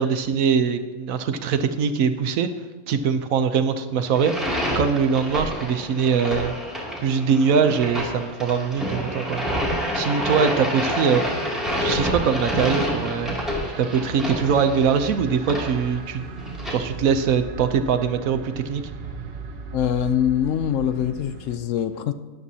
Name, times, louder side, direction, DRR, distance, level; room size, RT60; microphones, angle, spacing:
voice 1, 0.0-2.5 2.9-4.3 4.7-6.5 7.0-9.4 9.9-11.2 11.8-13.4 13.8-16.2 16.7-18.8, right 6 dB, 75° right, 1.1 m, -22 dB
sound 1, 4.1-16.7, equal, ahead, 2.5 m, -28 dB
sound 2, 11.2-21.6, right 3 dB, 50° right, 0.9 m, -38 dB
voice 2, 19.7-22.1, left 9 dB, 70° left, 0.9 m, -23 dB
13.5 x 10.5 x 2.8 m
omnidirectional pair, 1.5 m